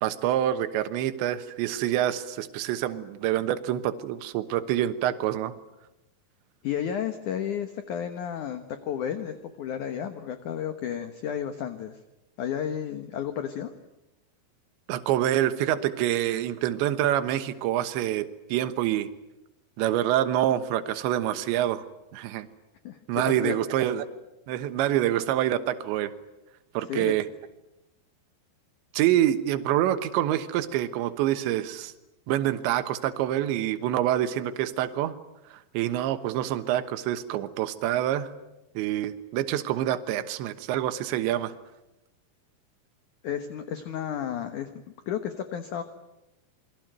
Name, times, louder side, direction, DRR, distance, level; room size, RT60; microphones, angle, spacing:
voice 1, 0.0-5.6 14.9-19.1 19.8-21.8 22.1-22.5 23.1-24.1 24.5-26.1 26.8-27.3 28.9-31.9 32.3-35.2 35.5-38.3 38.8-41.5, right 12 dB, 80° right, 10 dB, 3.5 m, -26 dB
voice 2, 6.6-12.0 12.4-13.7 22.8-23.6 26.9-27.1 43.2-44.7 45.1-45.8, left 9 dB, 65° left, 8 dB, 2.1 m, -32 dB
28.5 x 22.0 x 9.2 m, 0.94 s
omnidirectional pair, 5.2 m